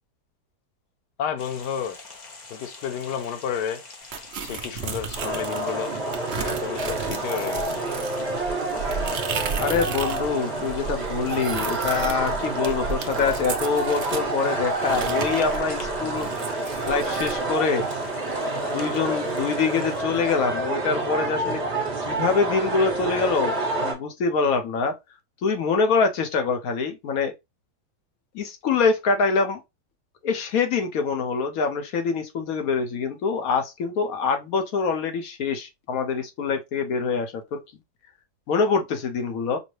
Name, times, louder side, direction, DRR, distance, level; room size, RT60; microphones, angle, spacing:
voice 1, 1.2-2.0 2.5-3.8 4.4-5.9 6.4-7.8, left 8 dB, 85° left, 1.2 m, -31 dB
sound 1, 1.4-20.0, left 3 dB, 45° left, 0.5 m, -45 dB
sound 2, 4.1-5.7 6.1-10.3 10.6-14.3 14.8-17.4, right 6 dB, 60° right, 0.6 m, -34 dB
sound 3, 5.1-23.9, right 2 dB, 45° right, 1.4 m, -28 dB
voice 2, 9.6-16.3 16.9-17.8 18.7-21.6 22.0-24.9 25.4-27.3 28.3-29.6 30.2-37.6 38.5-39.6, left 5 dB, 65° left, 1.1 m, -25 dB
5.2 x 2.0 x 3.1 m
omnidirectional pair, 1.7 m